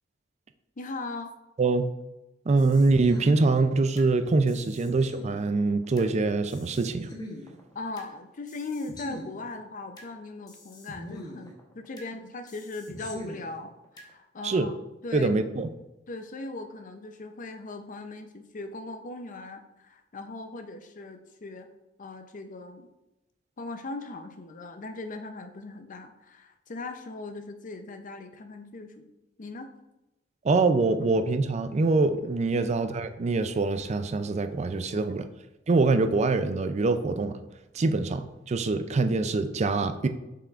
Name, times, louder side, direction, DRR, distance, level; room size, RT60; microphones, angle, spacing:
voice 1, 0.8-1.3 7.7-13.7 14.1-14.7 15.0-15.3 16.1-21.7 22.0-22.9 23.6-29.1 29.4-29.7 32.5-32.7 34.9-35.3, left 3 dB, 45° left, 7 dB, 0.6 m, -39 dB
voice 2, 1.6-1.9 2.5-7.1 14.4-14.7 15.1-15.7 30.4-35.3 35.7-37.4 37.7-40.1, right 3 dB, 35° right, 9 dB, 0.4 m, -24 dB
sound 1, 2.6-4.1 4.5-6.1 6.5-8.1 8.5-10.1 10.5-12.1 12.5-14.1, left 1 dB, 20° left, 1.0 m, -44 dB
7.0 x 5.7 x 2.4 m, 0.96 s
head